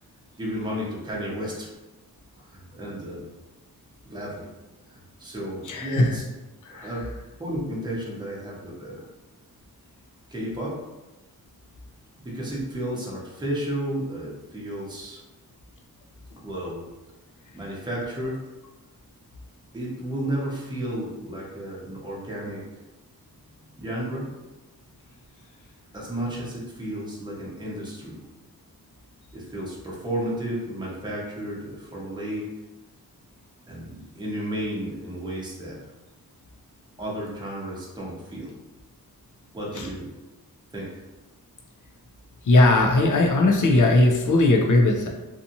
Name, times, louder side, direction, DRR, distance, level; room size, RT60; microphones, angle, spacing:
voice 1, 0.4-1.7 2.5-3.3 4.1-4.5 4.9-6.2 6.7-7.1 7.4-9.0 10.3-10.9 12.2-15.2 16.4-16.9 17.5-18.4 19.7-22.6 23.8-24.3 25.9-28.2 29.3-32.5 33.7-35.8 37.0-38.6 39.5-40.1 40.7-41.0, right 1 dB, 10° right, -5 dB, 0.8 m, -32 dB
voice 2, 5.6-6.1 6.6-7.0 39.7-39.9 42.4-45.1, left 2 dB, 55° left, 1 dB, 0.6 m, -19 dB
2.7 x 2.4 x 2.7 m, 1.0 s
wide cardioid pair, 90°, 37 cm